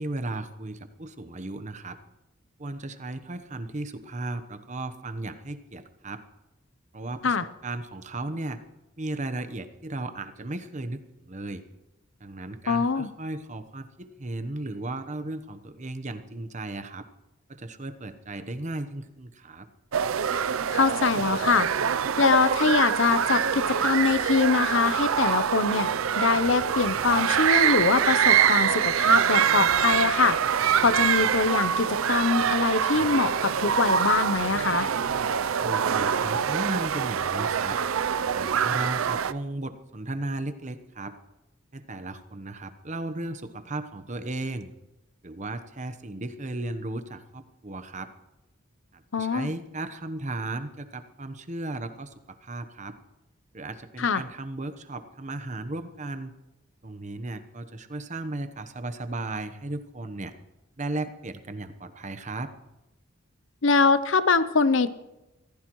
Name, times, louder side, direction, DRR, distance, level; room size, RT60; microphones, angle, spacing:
voice 1, 0.0-2.0 2.6-6.2 6.9-8.6 9.0-11.6 12.2-17.1 17.5-19.7 35.6-37.8 38.3-41.2 41.7-44.7 45.2-48.1 48.9-53.0 53.5-56.3 56.8-60.3 60.8-62.5, right 2 dB, 35° right, 10 dB, 1.0 m, -35 dB
voice 2, 12.7-13.1 20.7-21.7 22.2-25.9 26.2-34.9 49.1-49.5 54.0-54.2 63.6-64.9, left 4 dB, 65° left, 13 dB, 0.7 m, -23 dB
sound 1, 19.9-39.3, right 8 dB, 85° right, 0.5 m, -24 dB
24.5 x 15.5 x 3.1 m, 0.97 s
head